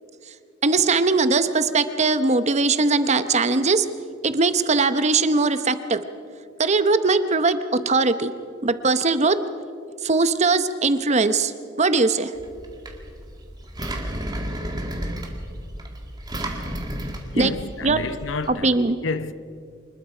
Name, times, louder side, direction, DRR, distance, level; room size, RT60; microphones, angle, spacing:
voice 1, 0.6-3.9 4.2-6.0 6.6-8.3 8.6-9.4 10.0-12.3 17.4-17.5 17.8-18.0 18.6-19.0, right 3 dB, 35° right, 0.9 m, -20 dB
Engine, 12.4-18.5, right 1 dB, 20° right, 2.1 m, -32 dB
voice 2, 17.3-19.3, left 3 dB, 80° left, 0.8 m, -30 dB
25.5 x 20.5 x 5.0 m
head